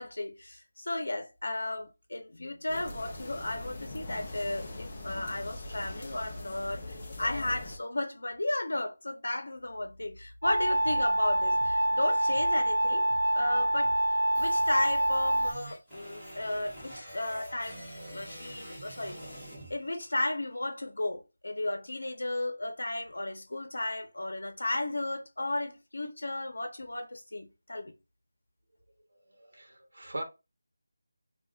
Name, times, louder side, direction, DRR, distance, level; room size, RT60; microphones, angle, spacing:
voice 1, 0.0-19.4 19.7-27.9, left 1 dB, 90° left, 0.7 m, -34 dB
sound 1, 2.7-7.8, left 2 dB, 20° left, 0.5 m, -41 dB
sound 2, 10.4-15.5, right 1 dB, 80° right, 0.5 m, -26 dB
sound 3, 14.3-20.4, equal, ahead, 0.9 m, -46 dB
voice 2, 29.1-30.2, right 1 dB, 65° right, 1.0 m, -41 dB
2.4 x 2.3 x 3.8 m
figure-of-eight pair, 180°, 0 cm